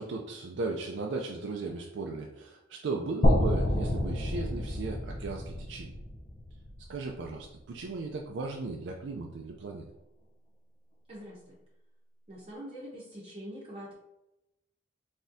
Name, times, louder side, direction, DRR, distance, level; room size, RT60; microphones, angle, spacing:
voice 1, 0.0-6.0 6.9-9.8, right 3 dB, 75° right, 1 dB, 0.4 m, -36 dB
sound 1, 3.2-7.3, left 1 dB, 45° left, 0.6 m, -28 dB
voice 2, 11.1-11.5 12.3-13.9, equal, 35° right, -6 dB, 0.8 m, -44 dB
4.1 x 3.5 x 2.6 m, 0.89 s
head